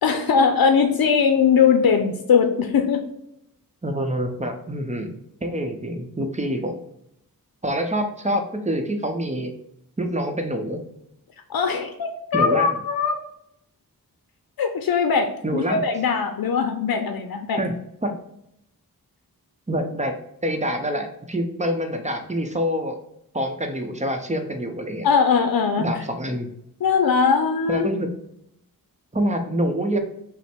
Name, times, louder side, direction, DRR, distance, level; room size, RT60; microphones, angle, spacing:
voice 1, 0.0-3.0 11.5-13.2 14.6-17.6 25.0-25.9 26.8-27.9, left 6 dB, 80° left, 5 dB, 0.6 m, -20 dB
voice 2, 3.8-6.8 7.6-9.5 10.0-10.8 12.3-12.8 15.4-15.8 17.6-18.2 19.7-20.2 20.4-23.0 23.3-25.1 25.8-26.5 27.7-28.1 29.1-30.0, equal, 20° right, 5 dB, 0.7 m, -26 dB
5.4 x 2.1 x 4.5 m, 0.77 s
wide cardioid pair, 75°, 36 cm